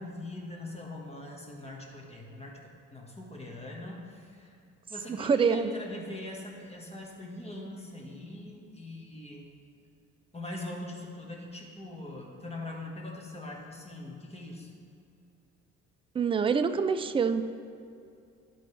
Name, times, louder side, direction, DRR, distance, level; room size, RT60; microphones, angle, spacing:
voice 1, 0.0-2.6 2.9-4.6 4.9-9.5 10.3-14.7, left 1 dB, 20° left, -1 dB, 1.5 m, -42 dB
voice 2, 5.2-5.7 16.1-17.4, right 6 dB, 20° right, 10 dB, 0.3 m, -25 dB
11.5 x 4.3 x 3.3 m, 2.6 s
cardioid pair, 90°, 30 cm